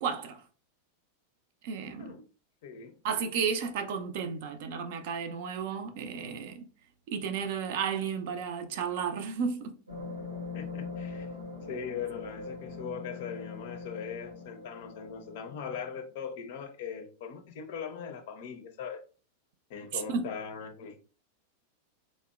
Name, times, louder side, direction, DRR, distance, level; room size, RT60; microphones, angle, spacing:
voice 1, 0.0-0.4 1.6-2.2 3.0-6.6 7.1-9.8 19.9-20.2, right 6 dB, 50° right, 0.4 m, -33 dB
voice 2, 2.6-2.9 10.5-11.3 11.7-19.0 19.7-21.1, left 7 dB, 50° left, 0.5 m, -40 dB
sound 1, 9.9-16.2, left 4 dB, 80° right, 0.8 m, -42 dB
2.8 x 2.0 x 2.3 m
figure-of-eight pair, 90°, 0 cm